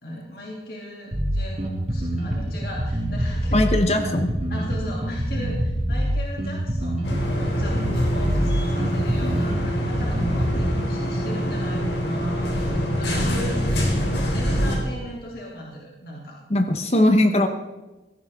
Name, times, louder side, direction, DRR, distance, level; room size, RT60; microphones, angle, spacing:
voice 1, 0.0-3.7 4.0-4.1 4.5-13.6 14.3-16.4, equal, 60° left, -3 dB, 2.8 m, -37 dB
Bass guitar, 1.1-10.7, equal, 40° right, 2.6 m, -25 dB
voice 2, 3.5-4.3 16.5-17.5, left 1 dB, 35° left, 6 dB, 1.0 m, -19 dB
sound 1, 7.0-14.8, equal, 85° left, 3.4 m, -25 dB
17.5 x 14.5 x 3.7 m, 1.1 s
head